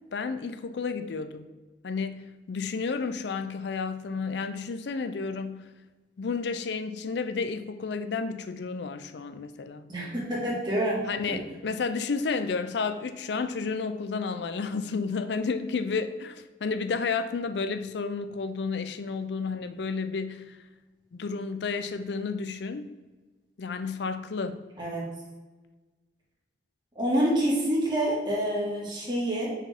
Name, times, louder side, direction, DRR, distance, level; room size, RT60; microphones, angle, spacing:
voice 1, 0.1-1.5 1.8-5.7 6.2-9.9 11.1-20.6 21.1-22.9 23.6-24.6, left 4 dB, 70° left, 10 dB, 0.4 m, -31 dB
voice 2, 9.9-11.4 24.8-25.1 27.0-29.6, right 1 dB, 25° right, -6 dB, 1.8 m, -27 dB
5.8 x 4.7 x 3.5 m, 1.3 s
head